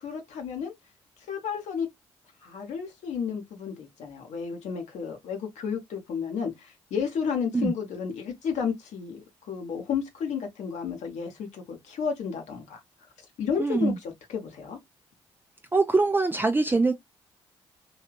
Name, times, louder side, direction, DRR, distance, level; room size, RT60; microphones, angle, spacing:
voice 1, 0.0-0.7 1.3-1.9 2.4-12.8 13.4-14.8, left 6 dB, 60° left, 1.0 m, -32 dB
voice 2, 13.6-14.0 15.7-16.9, right 3 dB, 15° right, 0.4 m, -23 dB
3.1 x 2.8 x 2.3 m
figure-of-eight pair, 40°, 13 cm